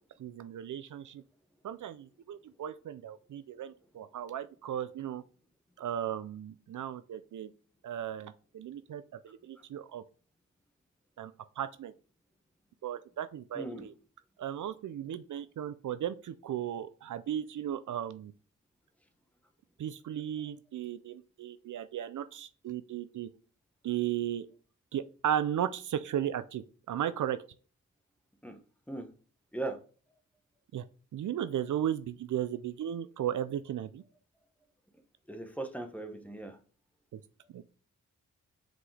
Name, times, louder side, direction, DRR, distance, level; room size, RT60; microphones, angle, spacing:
voice 1, 0.2-1.2 1.6-5.2 5.8-7.5 7.8-10.0 11.2-11.9 12.8-13.9 14.4-18.3 19.8-23.3 23.8-24.5 24.9-27.4 30.7-30.8 31.1-34.0 37.1-37.2 37.5-37.6, right 10 dB, 75° right, 12 dB, 0.5 m, -35 dB
voice 2, 13.5-13.9 28.4-28.6 28.9-29.1 29.5-29.8 35.3-36.6, right 2 dB, 5° left, 6 dB, 1.1 m, -38 dB
6.0 x 4.9 x 3.3 m, 0.38 s
cardioid pair, 80°, 31 cm